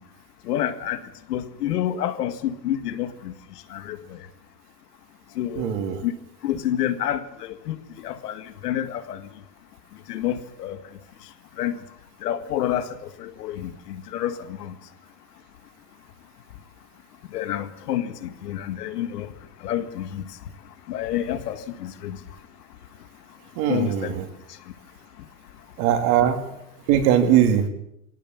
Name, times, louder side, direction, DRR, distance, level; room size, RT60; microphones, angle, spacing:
voice 1, 0.5-1.0 1.3-3.3 3.7-4.0 5.4-5.7 6.0-6.1 6.4-7.8 8.0-9.2 10.1-10.8 11.6-11.7 12.2-12.9 13.2-14.3 14.6-14.7 17.3-19.3 19.6-20.2 20.9-22.2 23.7-24.1, left 11 dB, 75° left, 10 dB, 2.0 m, -28 dB
voice 2, 5.6-6.0 23.6-24.2 25.8-26.4 26.9-27.6, right 10 dB, 40° right, 6 dB, 2.7 m, -20 dB
21.0 x 17.5 x 7.3 m, 0.76 s
supercardioid pair, 160°, 48 cm